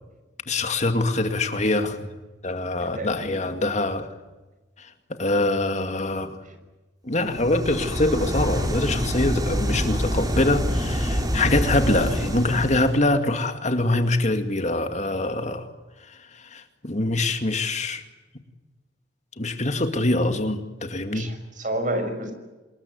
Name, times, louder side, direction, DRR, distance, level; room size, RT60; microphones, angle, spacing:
voice 1, 0.5-2.1 2.4-4.1 4.8-4.9 5.2-6.4 7.0-15.7 16.4-18.0 19.4-21.3, left 2 dB, 40° left, 7 dB, 2.3 m, -24 dB
voice 2, 2.8-3.3 6.4-6.5 21.1-22.3, right 1 dB, 45° right, 7 dB, 6.0 m, -30 dB
sound 1, 7.3-13.0, equal, 20° right, 4.0 m, -26 dB
27.0 x 21.0 x 9.5 m, 1.2 s
head